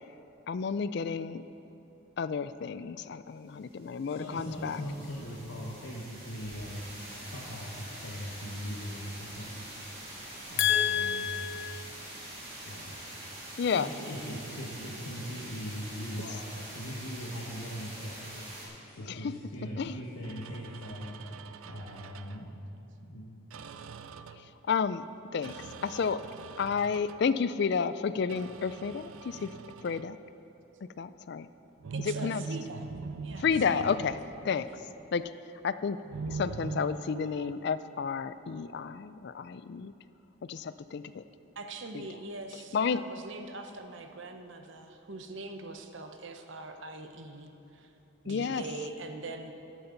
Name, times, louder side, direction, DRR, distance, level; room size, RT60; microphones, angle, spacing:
voice 1, 0.5-1.4 2.2-4.8 10.6-11.9 13.6-13.9 19.1-19.3 19.8-19.9 24.7-25.0 25.3-25.6 25.8-26.2 26.6-29.5 29.8-30.2 31.0-31.5 32.0-32.4 33.4-34.2 34.4-34.7 35.1-35.2 35.6-36.0 36.3-39.9 40.5-41.2 41.9-42.0 42.7-43.0 48.3-48.6, left 6 dB, 50° left, 14 dB, 0.3 m, -31 dB
sound 1, 3.7-18.7, right 1 dB, 30° right, 3.2 m, -45 dB
voice 2, 4.1-6.8 7.2-10.0 10.5-11.3 12.6-21.2 21.6-22.5 23.0-23.3, equal, 85° left, -5 dB, 1.3 m, -40 dB
sound 2, 10.7-12.6, right 1 dB, 25° left, 1.8 m, -43 dB
sound 3, 20.2-22.5 23.5-24.6 25.4-27.3 28.3-30.2 31.8-35.0 36.1-37.5, right 4 dB, 80° right, 0.4 m, -42 dB
voice 3, 31.9-32.8 33.2-34.0 34.4-34.6 41.6-47.9 48.2-49.5, right 2 dB, 60° right, 5 dB, 0.8 m, -42 dB
14.0 x 11.5 x 3.9 m, 2.9 s
head